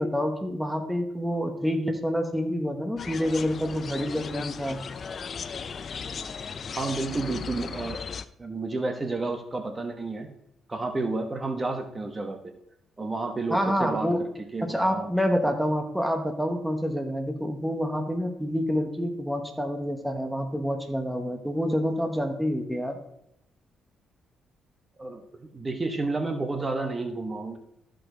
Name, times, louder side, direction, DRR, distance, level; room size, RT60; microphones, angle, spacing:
voice 1, 0.0-4.8 13.5-14.2 14.6-23.0, equal, ahead, 4 dB, 1.2 m, -27 dB
sound 1, 3.0-8.3, left 6 dB, 45° left, 0.5 m, -36 dB
voice 2, 6.7-8.0 8.4-10.3 10.7-12.4 13.0-14.1 14.5-15.1 25.0-27.6, right 3 dB, 25° right, 5 dB, 1.2 m, -31 dB
13.5 x 5.1 x 3.9 m, 0.80 s
cardioid pair, 90°, 0 cm